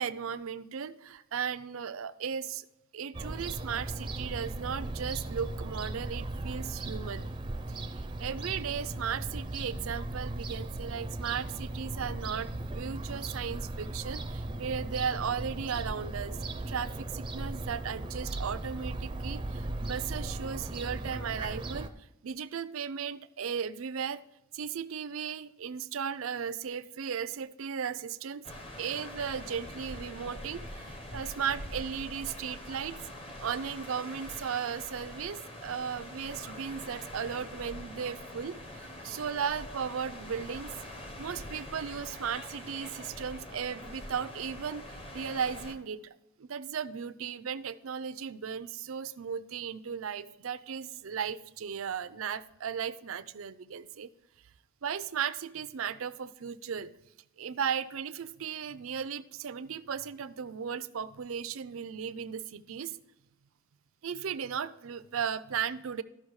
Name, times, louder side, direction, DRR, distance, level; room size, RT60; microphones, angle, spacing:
voice 1, 0.0-2.6 2.9-7.3 8.2-21.9 22.2-24.2 24.5-28.4 28.8-33.0 33.4-40.7 41.2-54.1 54.8-56.9 57.4-63.0 64.0-66.0, right 7 dB, 75° right, 15 dB, 0.5 m, -36 dB
Fowl / Gull seagull, 3.1-21.9, right 2 dB, 20° right, 0.5 m, -37 dB
sound 1, 28.4-45.7, left 1 dB, 25° left, 1.0 m, -44 dB
13.0 x 5.8 x 4.8 m, 0.93 s
head